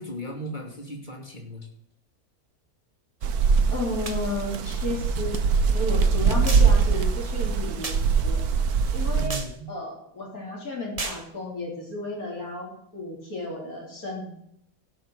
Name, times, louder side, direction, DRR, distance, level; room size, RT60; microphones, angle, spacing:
voice 1, 0.0-1.7 9.1-9.7, right 1 dB, 30° left, 1 dB, 2.9 m, -36 dB
sound 1, 3.2-9.3, right 5 dB, 75° right, 1.4 m, -22 dB
voice 2, 3.7-5.3 5.7-7.9 8.2-8.5 8.9-9.4 9.7-14.3, left 2 dB, 65° left, -2 dB, 4.0 m, -33 dB
sound 2, 4.0-4.2 5.3-5.4 6.4-6.8 7.8-8.1 9.3-9.6 11.0-11.3, right 3 dB, 25° right, 1.1 m, -33 dB
16.5 x 6.0 x 6.3 m, 0.74 s
omnidirectional pair, 1.6 m